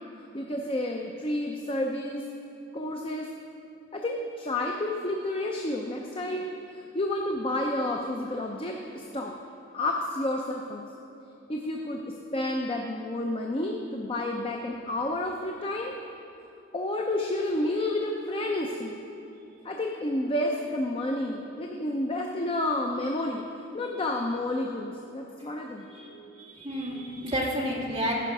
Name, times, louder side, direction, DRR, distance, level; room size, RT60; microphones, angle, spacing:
voice 1, 0.3-2.2 2.7-3.3 3.9-9.3 9.7-10.8 11.5-12.0 12.3-15.9 16.7-19.0 19.6-23.4 23.7-25.9, left 1 dB, 30° left, 1 dB, 0.6 m, -30 dB
voice 2, 25.9-28.1, equal, 30° right, -4 dB, 1.8 m, -31 dB
15.0 x 5.8 x 4.8 m, 2.8 s
head